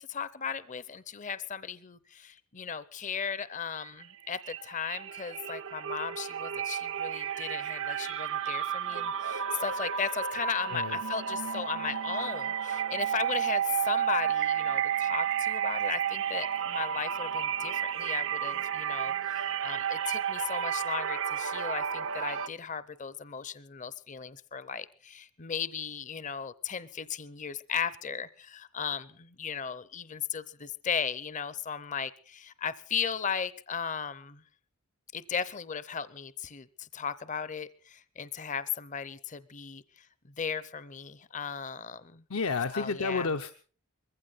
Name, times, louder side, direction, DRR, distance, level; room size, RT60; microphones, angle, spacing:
voice 1, 0.0-34.4 35.1-40.1 40.4-42.2 42.7-43.3, left 7 dB, 35° left, 17 dB, 0.7 m, -36 dB
sound 1, 3.8-4.1 4.4-22.5, right 8 dB, 60° right, 0.7 m, -32 dB
voice 2, 42.3-43.5, left 4 dB, 70° left, 8 dB, 0.9 m, -30 dB
21.5 x 15.5 x 4.1 m, 0.39 s
head